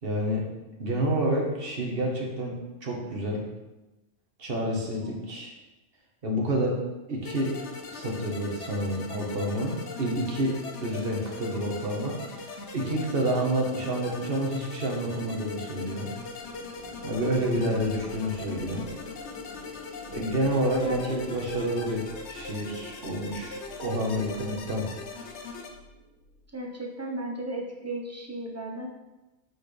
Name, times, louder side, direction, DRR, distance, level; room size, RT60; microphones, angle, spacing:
voice 1, 0.0-0.4 0.8-3.4 4.4-5.5 6.2-6.8 7.1-7.5 7.9-10.5 10.8-12.2 12.7-16.1 17.0-18.8 20.1-24.9, right 1 dB, 45° right, -1 dB, 1.4 m, -29 dB
sound 1, 7.2-25.7, left 4 dB, 60° left, 1.0 m, -40 dB
sound 2, 16.0-26.5, left 2 dB, 80° left, 3.1 m, -48 dB
voice 2, 26.5-28.9, right 1 dB, 15° right, -1 dB, 0.7 m, -35 dB
8.8 x 4.3 x 3.3 m, 1.1 s
omnidirectional pair, 1.4 m